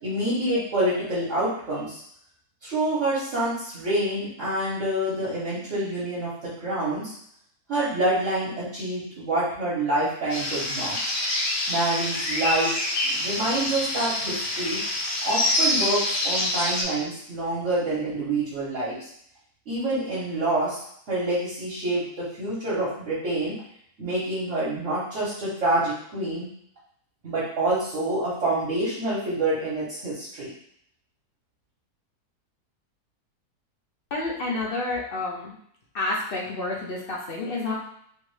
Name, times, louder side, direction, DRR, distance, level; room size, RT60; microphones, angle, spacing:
voice 1, 0.0-2.0 2.6-7.1 7.7-11.0 11.7-12.8 13.0-14.8 15.2-19.0 19.7-20.8 21.1-23.6 24.0-26.5 27.2-30.5, right 1 dB, 55° right, -11 dB, 1.3 m, -27 dB
sound 1, 10.3-16.8, left 1 dB, 70° left, 1.3 m, -26 dB
voice 2, 34.1-35.6 35.9-37.7, left 2 dB, 55° left, -3 dB, 0.6 m, -29 dB
3.3 x 2.5 x 3.1 m, 0.68 s
omnidirectional pair, 1.7 m